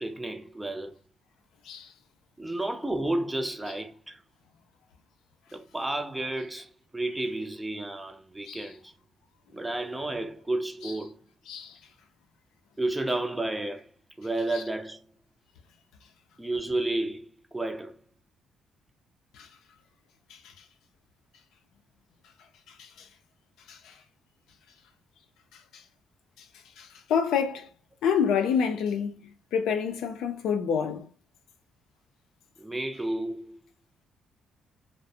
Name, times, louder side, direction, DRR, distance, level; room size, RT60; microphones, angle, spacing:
voice 1, 0.0-0.9 2.4-4.2 5.5-8.9 9.5-11.1 12.8-13.9 14.2-15.0 16.4-17.9 32.6-33.6, right 2 dB, 10° right, 0.4 m, -31 dB
voice 2, 11.5-11.8 14.5-14.6 19.4-19.5 22.8-23.1 23.7-23.9 26.8-27.7 28.0-29.2 29.5-31.0, left 7 dB, 85° left, 0.4 m, -28 dB
2.4 x 2.0 x 2.6 m
cardioid pair, 90°, 0 cm